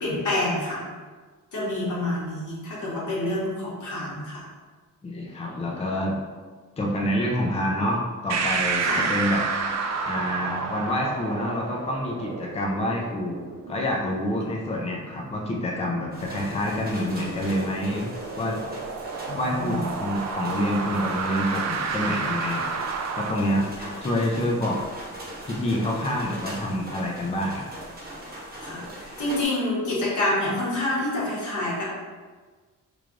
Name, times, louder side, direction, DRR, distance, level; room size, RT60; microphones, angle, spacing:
voice 1, 0.0-0.8 1.5-4.4 8.8-9.0 19.3-19.8 28.6-31.8, left 1 dB, 70° left, -6 dB, 1.3 m, -27 dB
voice 2, 5.0-6.2 6.8-9.4 10.0-13.4 13.7-18.1 18.4-18.7 19.3-22.8 23.1-24.8 25.4-27.8, left 1 dB, 20° left, -1 dB, 0.5 m, -27 dB
sound 1, 8.3-23.3, right 5 dB, 55° right, 0.4 m, -31 dB
sound 2, 16.1-29.4, right 1 dB, 30° right, 1.3 m, -40 dB
3.2 x 2.3 x 3.7 m, 1.4 s
cardioid pair, 115°, 32 cm